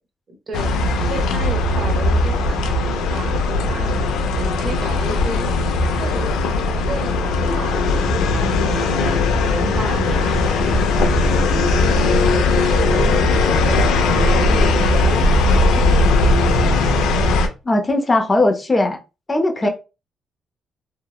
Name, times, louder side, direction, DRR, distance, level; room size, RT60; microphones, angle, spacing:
voice 1, 0.3-0.7 1.0-3.9 4.3-5.5 6.0-6.3 6.9-9.2 9.5-11.8 12.4-13.8 14.2-15.3 15.7-17.0 19.6-19.7, right 2 dB, 50° right, 0.8 m, -32 dB
sound 1, 0.5-17.5, left 2 dB, 90° left, 0.4 m, -18 dB
voice 2, 17.6-19.0 19.3-19.7, left 2 dB, 25° left, 0.5 m, -18 dB
2.8 x 2.0 x 2.2 m
cardioid pair, 90°, 0 cm